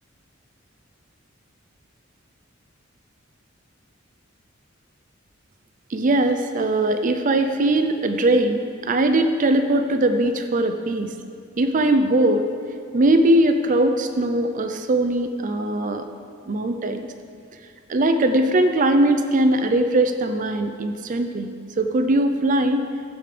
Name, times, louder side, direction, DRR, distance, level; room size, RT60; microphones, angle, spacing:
voice 1, 5.9-11.1 11.6-12.5 12.9-16.1 16.5-17.1 17.9-21.5 21.8-22.9, right 1 dB, 40° right, 7 dB, 0.5 m, -20 dB
15.0 x 5.2 x 5.0 m, 2.3 s
head